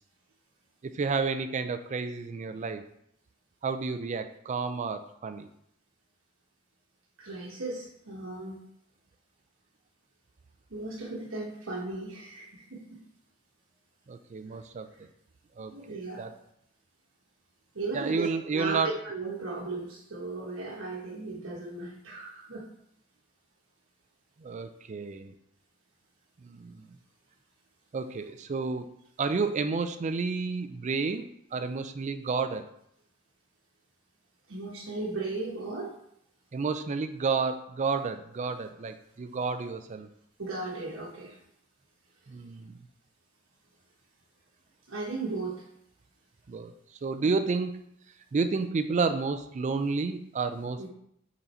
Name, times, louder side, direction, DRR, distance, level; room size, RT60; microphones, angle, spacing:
voice 1, 0.9-2.8 3.6-5.5 14.1-14.9 15.6-15.7 16.2-16.3 17.9-18.9 24.4-25.3 26.4-26.8 27.9-28.9 29.2-31.3 31.5-32.7 36.5-40.1 42.3-42.8 46.5-46.7 47.0-47.7 48.3-50.9, right 4 dB, 35° right, 9 dB, 0.4 m, -30 dB
voice 2, 7.2-8.6 10.7-13.0 15.7-16.2 17.7-18.3 18.5-22.7 34.5-35.9 40.4-41.4 44.9-45.6 47.2-47.3 50.8-50.9, right 3 dB, 70° right, -3 dB, 1.1 m, -36 dB
5.6 x 4.0 x 4.2 m, 0.73 s
head